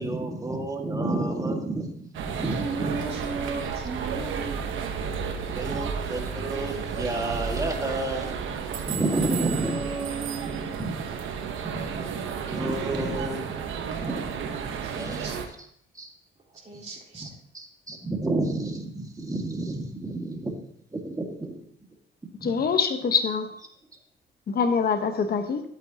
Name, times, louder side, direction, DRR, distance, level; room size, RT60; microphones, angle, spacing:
voice 1, 0.0-3.0 5.6-8.3 8.9-9.8 10.5-11.0 11.6-13.6 13.9-14.6 14.9-15.3 15.6-15.7 15.9-16.1 16.7-16.8 17.1-20.6 20.9-21.6 22.4-22.5, right 2 dB, 15° right, 2 dB, 1.9 m, -31 dB
sound 1, 2.1-15.5, right 6 dB, 80° right, 1.1 m, -32 dB
voice 2, 2.6-4.7 9.1-10.8 14.8-15.4 16.6-17.3, right 3 dB, 35° right, -6 dB, 4.0 m, -35 dB
voice 3, 22.4-23.5 24.5-25.6, left 6 dB, 50° left, 7 dB, 1.2 m, -24 dB
12.0 x 8.6 x 2.9 m, 0.67 s
cardioid pair, 90°, 20 cm